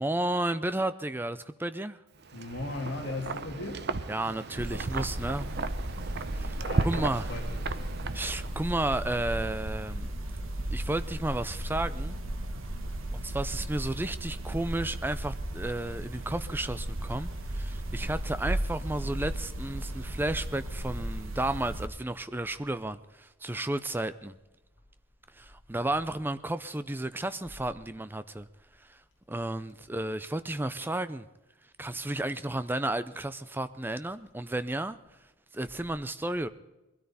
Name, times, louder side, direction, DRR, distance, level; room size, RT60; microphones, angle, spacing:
voice 1, 0.0-2.0 4.1-5.5 6.3-6.5 6.8-7.3 8.1-10.1 10.7-12.2 13.1-24.4 25.4-28.5 28.9-29.0 29.3-31.3 31.8-35.0 35.5-36.5, right 1 dB, 10° right, 13 dB, 0.4 m, -32 dB
Wind, 2.2-8.7, right 3 dB, 50° right, 0.7 m, -35 dB
voice 2, 2.3-3.9 6.6-7.8, left 2 dB, 55° left, -1 dB, 2.0 m, -38 dB
sound 1, 4.6-21.9, right 1 dB, 65° right, 1.4 m, -35 dB
21.0 x 13.0 x 4.1 m, 1.1 s
head